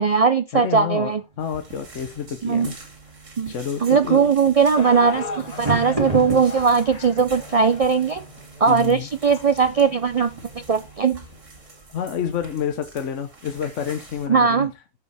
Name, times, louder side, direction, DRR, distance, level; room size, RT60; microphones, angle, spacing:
voice 1, 0.0-1.2 2.4-2.7 3.4-3.5 3.8-8.2 8.6-11.2 14.3-14.7, right 5 dB, 60° right, 0.3 m, -19 dB
voice 2, 0.5-2.7 3.4-4.3 8.7-9.1 11.9-14.7, left 8 dB, 75° left, 1.2 m, -29 dB
sound 1, 1.1-11.9, right 2 dB, 25° right, 2.6 m, -36 dB
sound 2, 1.4-14.3, right 2 dB, 85° right, 2.7 m, -45 dB
sound 3, 4.7-11.0 11.7-11.8 12.5-12.6, left 3 dB, 35° left, 1.2 m, -37 dB
14.0 x 4.9 x 3.3 m
omnidirectional pair, 1.3 m